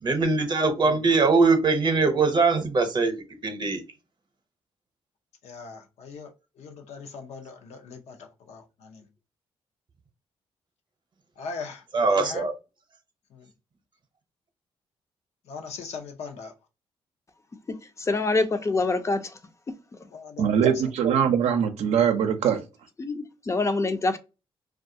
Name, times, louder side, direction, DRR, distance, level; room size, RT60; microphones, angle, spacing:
voice 1, 0.0-3.1 3.4-3.8 11.9-12.5, right 4 dB, 45° right, 0.7 m, -22 dB
voice 2, 5.4-6.3 6.6-9.0 11.4-11.8 12.1-12.5 13.3-13.5 15.5-16.5 20.1-20.9, left 4 dB, 80° left, 0.6 m, -40 dB
voice 3, 18.1-19.2 23.0-24.2, left 3 dB, 25° left, 0.4 m, -25 dB
voice 4, 20.4-22.6, right 8 dB, 80° right, 0.5 m, -22 dB
2.3 x 2.3 x 2.6 m
cardioid pair, 75°, 11 cm